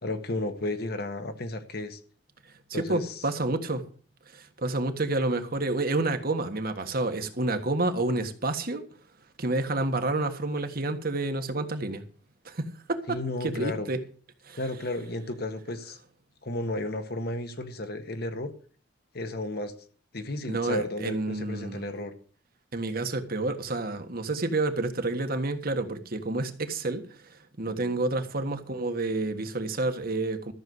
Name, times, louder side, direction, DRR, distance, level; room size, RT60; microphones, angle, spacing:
voice 1, 0.0-2.0 2.7-3.2 13.1-13.9 14.6-16.0 16.4-18.5 19.1-19.7 20.1-22.1, left 1 dB, 55° left, 1.5 m, -33 dB
voice 2, 2.7-3.8 4.3-8.8 9.4-12.0 12.4-14.0 14.5-14.6 20.5-21.9 22.7-30.5, right 2 dB, 50° right, 1.5 m, -29 dB
13.5 x 6.9 x 8.0 m
head